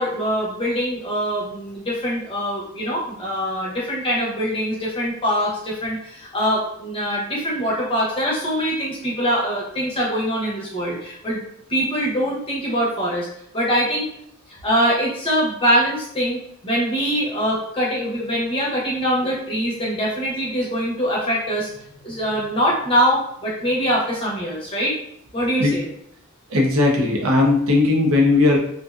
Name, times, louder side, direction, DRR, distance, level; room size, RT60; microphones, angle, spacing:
voice 1, 0.0-11.4 11.7-13.3 13.5-14.1 14.6-24.9 25.3-25.9, equal, 25° left, -5 dB, 0.6 m, -23 dB
voice 2, 26.5-28.6, left 2 dB, 65° right, 0 dB, 0.5 m, -17 dB
2.5 x 2.2 x 2.3 m, 0.71 s
head